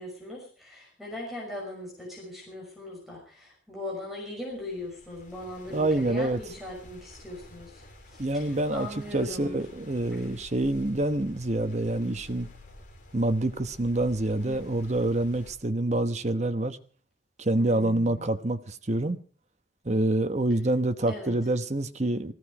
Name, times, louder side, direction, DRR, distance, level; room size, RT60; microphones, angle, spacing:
voice 1, 0.0-9.6 10.1-10.2 14.4-14.7 17.5-18.4 21.1-21.4, left 1 dB, ahead, 5.9 m, -39 dB
sound 1, 4.5-15.6, left 1 dB, 40° left, 3.7 m, -50 dB
voice 2, 5.7-6.4 8.2-8.9 9.1-12.5 13.1-16.8 17.4-19.2 19.8-22.3, right 1 dB, 35° right, 1.0 m, -27 dB
17.5 x 15.5 x 4.9 m
head